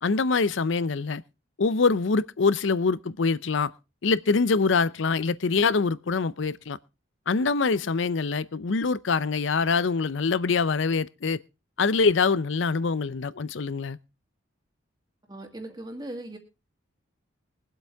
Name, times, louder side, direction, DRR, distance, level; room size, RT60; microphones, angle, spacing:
voice 1, 0.0-1.2 1.6-3.7 4.0-6.8 7.3-11.4 11.8-14.0, left 4 dB, 70° left, 0.6 m, -24 dB
voice 2, 15.3-16.4, right 1 dB, 20° right, 2.1 m, -38 dB
22.5 x 7.9 x 3.5 m
head